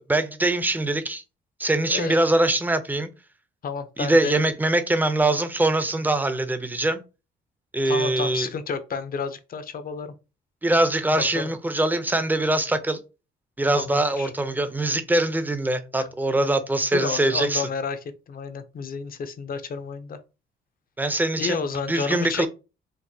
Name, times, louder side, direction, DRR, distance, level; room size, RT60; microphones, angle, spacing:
voice 1, 0.1-1.2 1.6-3.1 4.0-7.0 7.7-8.5 10.6-13.0 13.6-17.7 21.0-21.6 21.9-22.5, right 2 dB, 10° right, 0.5 m, -23 dB
voice 2, 1.8-2.3 3.6-4.4 5.2-5.4 7.8-10.1 11.2-11.4 13.7-14.3 16.0-16.1 16.9-20.2 21.4-22.5, left 5 dB, 45° left, 0.6 m, -31 dB
4.5 x 2.1 x 2.7 m
cardioid pair, 90°, 20 cm